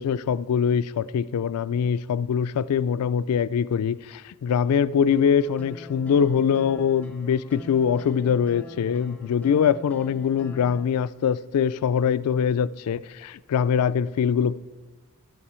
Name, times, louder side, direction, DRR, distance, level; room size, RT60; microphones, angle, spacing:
voice 1, 0.0-14.6, left 7 dB, 85° left, 0.3 m, -23 dB
sound 1, 5.1-10.9, left 2 dB, 5° left, 0.5 m, -43 dB
12.0 x 11.5 x 4.3 m
head